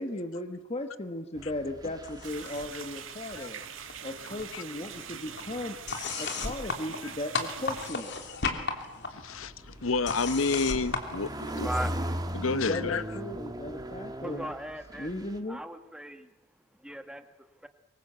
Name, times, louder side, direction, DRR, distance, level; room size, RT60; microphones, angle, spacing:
voice 1, 0.0-3.6 4.0-5.8 6.2-8.1 12.5-14.5 15.0-15.6, left 1 dB, 30° left, 6 dB, 1.4 m, -36 dB
sound 1, 1.4-3.3 3.6-4.8 5.9-6.1 8.2-15.4, equal, 20° right, 1.7 m, -38 dB
sound 2, 2.0-2.8 3.1-4.1 4.4-11.9, left 4 dB, 60° left, 3.1 m, -36 dB
sound 3, 2.2-7.9, right 7 dB, 75° right, 2.5 m, -43 dB
voice 2, 9.1-11.8 12.3-13.1, left 4 dB, 90° left, 15 dB, 1.0 m, -30 dB
voice 3, 11.6-11.9 14.2-15.1 15.5-16.3 16.8-17.2 17.6-17.7, right 1 dB, 5° right, 8 dB, 1.6 m, -37 dB
25.0 x 23.0 x 8.1 m, 1.0 s
head